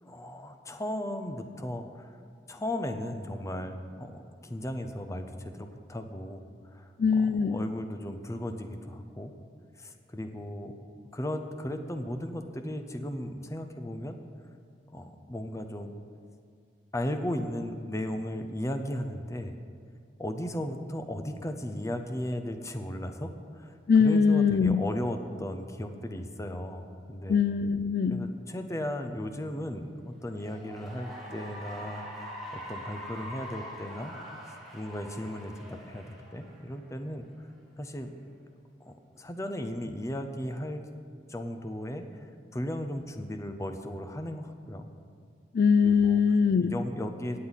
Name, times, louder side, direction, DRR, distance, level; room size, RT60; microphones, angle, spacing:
voice 1, 0.0-2.2 2.5-9.3 9.8-10.7 11.1-14.2 14.9-15.9 16.9-19.5 20.2-27.4 28.1-34.1 34.5-37.3 37.8-38.1 38.8-40.8 41.3-44.9 45.8-46.2 46.6-47.4, left 1 dB, 15° left, 7 dB, 0.7 m, -36 dB
voice 2, 7.0-7.6 23.9-24.8 27.3-28.2 45.5-46.8, left 5 dB, 55° left, 11 dB, 0.3 m, -22 dB
Cheering / Applause, 30.2-36.9, equal, ahead, 2.4 m, -43 dB
18.5 x 7.7 x 4.1 m, 2.4 s
head